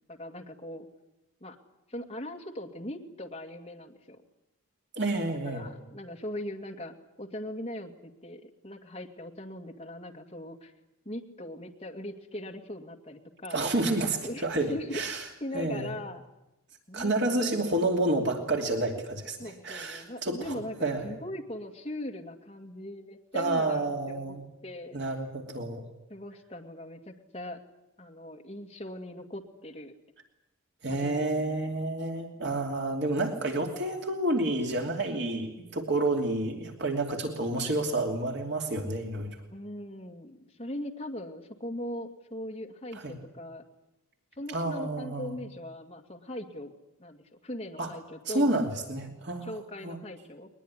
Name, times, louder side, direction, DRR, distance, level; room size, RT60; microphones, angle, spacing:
voice 1, 0.1-0.9 1.4-1.6 1.9-4.2 5.4-10.7 11.1-13.7 14.2-15.1 15.4-16.2 16.9-17.7 19.4-20.8 21.0-24.4 24.6-25.0 26.1-27.6 28.0-29.9 30.9-31.6 39.5-43.6 44.4-46.7 47.0-48.6 49.4-50.5, left 1 dB, 25° left, 1 dB, 2.1 m, -40 dB
voice 2, 4.9-5.7 13.5-15.3 15.5-15.9 16.9-21.1 23.3-24.4 24.9-25.8 30.8-39.4 43.0-43.1 44.5-45.3 47.8-47.9 48.3-49.5 49.8-50.0, right 2 dB, 50° right, 2 dB, 2.8 m, -29 dB
22.0 x 21.5 x 9.9 m, 0.90 s
head